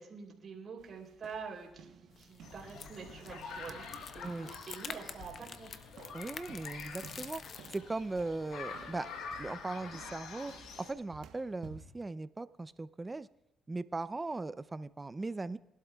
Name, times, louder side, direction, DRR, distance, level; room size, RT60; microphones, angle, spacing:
voice 1, 0.0-5.7, right 5 dB, 50° right, -1 dB, 3.3 m, -46 dB
sound 1, 0.8-12.0, right 7 dB, 80° right, 1.0 m, -56 dB
sound 2, 2.1-7.8, left 6 dB, 55° left, 0.7 m, -48 dB
sound 3, 2.4-10.9, left 5 dB, 85° left, 1.4 m, -47 dB
voice 2, 6.1-7.4 7.7-9.1 9.4-10.5 10.8-13.3 13.7-15.6, right 3 dB, 20° right, 15 dB, 0.5 m, -38 dB
21.0 x 12.0 x 2.3 m, 0.86 s
cardioid pair, 90°, 0 cm